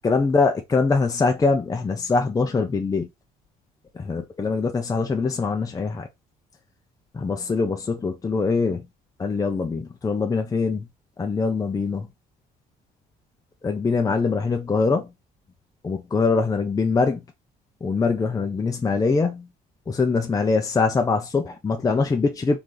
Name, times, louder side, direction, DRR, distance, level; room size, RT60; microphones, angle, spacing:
voice 1, 0.0-3.1 3.9-6.1 7.1-8.9 9.2-10.9 11.2-12.1 13.6-15.1 15.8-17.2 17.8-19.5 19.9-22.6, left 4 dB, 20° left, 0.6 m, -23 dB
4.0 x 3.2 x 3.9 m
cardioid pair, 110°, 17 cm